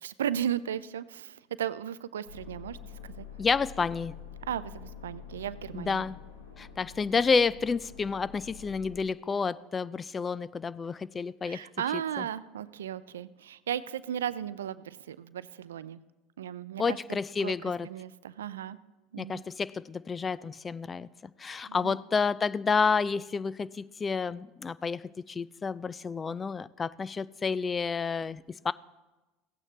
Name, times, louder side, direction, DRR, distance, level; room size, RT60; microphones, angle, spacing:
voice 1, 0.0-2.8 3.0-3.3 4.4-6.1 11.4-16.0 16.4-17.0 17.4-17.5 17.8-18.8 19.1-19.4 21.7-22.0, right 10 dB, 80° right, 17 dB, 0.4 m, -35 dB
sound 1, 2.2-9.0, left 8 dB, 85° left, 1.4 m, -47 dB
voice 2, 3.4-4.1 5.7-6.2 6.6-11.6 12.2-12.3 16.8-17.9 19.2-21.1 21.4-28.7, left 5 dB, 25° left, 19 dB, 0.3 m, -30 dB
16.0 x 8.9 x 3.3 m, 1.1 s
hypercardioid pair, 75°, 0 cm